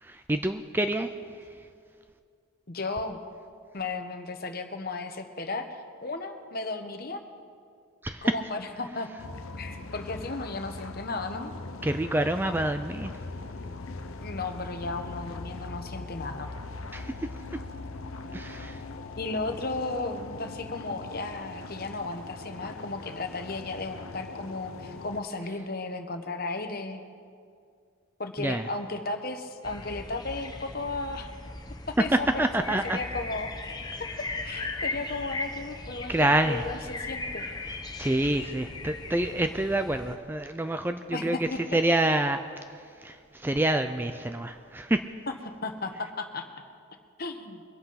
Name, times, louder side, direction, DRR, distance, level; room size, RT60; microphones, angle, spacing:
voice 1, 0.0-1.1 8.0-8.3 11.8-13.1 16.9-17.1 18.3-18.8 28.4-28.6 32.4-33.0 36.1-36.6 38.0-42.4 43.0-45.0, right 1 dB, 10° right, 8 dB, 0.4 m, -27 dB
voice 2, 2.7-3.2 3.7-7.2 8.2-9.1 9.6-11.5 14.2-16.5 19.2-27.0 28.2-31.3 31.9-33.7 34.0-34.1 34.4-37.4 41.1-41.8 45.3-45.4 45.6-46.5 47.2-47.6, left 3 dB, 45° left, 6 dB, 1.1 m, -35 dB
sound 1, 9.2-25.2, left 3 dB, 85° left, 0.8 m, -40 dB
sound 2, 29.6-40.2, left 2 dB, 20° left, 0.8 m, -38 dB
23.0 x 8.0 x 5.8 m, 2.2 s
head